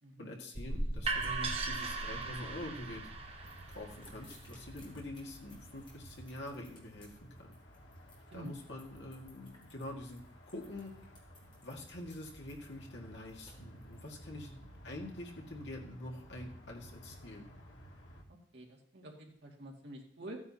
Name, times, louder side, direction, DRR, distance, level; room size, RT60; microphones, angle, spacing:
voice 1, 0.2-3.0 3.7-7.1 7.4-7.5 8.3-11.0 11.6-17.5, left 1 dB, 70° left, -1 dB, 2.0 m, -46 dB
sound 1, 0.5-6.3, right 3 dB, 30° right, 1.0 m, -39 dB
sound 2, 2.1-18.2, equal, 85° left, 1.8 m, -54 dB
sound 3, 3.4-14.1, left 2 dB, 30° left, 3.5 m, -61 dB
voice 2, 14.3-14.6 18.5-20.4, right 1 dB, 65° right, -1 dB, 2.3 m, -48 dB
15.0 x 9.4 x 2.9 m, 0.64 s
head